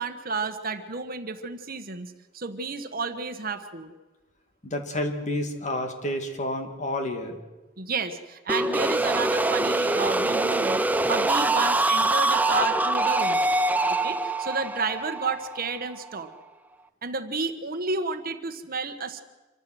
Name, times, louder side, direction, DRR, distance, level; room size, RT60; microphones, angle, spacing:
voice 1, 0.0-3.9 7.8-13.5 13.9-16.3 17.0-19.2, right 4 dB, 50° right, 9 dB, 1.4 m, -31 dB
voice 2, 4.6-7.4, left 1 dB, 40° left, 5 dB, 2.3 m, -30 dB
sound 1, 8.5-16.2, right 2 dB, 10° right, 0.6 m, -24 dB
26.0 x 14.5 x 7.9 m, 1.2 s
head